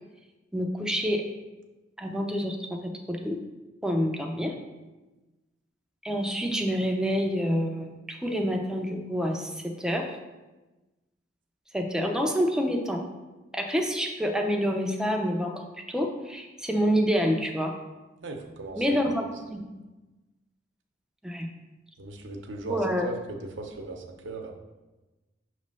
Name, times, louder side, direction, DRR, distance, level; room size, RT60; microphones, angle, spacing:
voice 1, 0.5-1.2 2.0-3.4 3.8-4.5 6.0-10.1 11.7-13.0 13.5-17.7 18.8-19.8 21.2-21.5 22.7-23.1, equal, 5° right, 2 dB, 0.5 m, -27 dB
voice 2, 18.2-19.0 22.0-24.5, right 2 dB, 80° right, 3 dB, 0.8 m, -38 dB
6.1 x 3.1 x 5.3 m, 1.1 s
head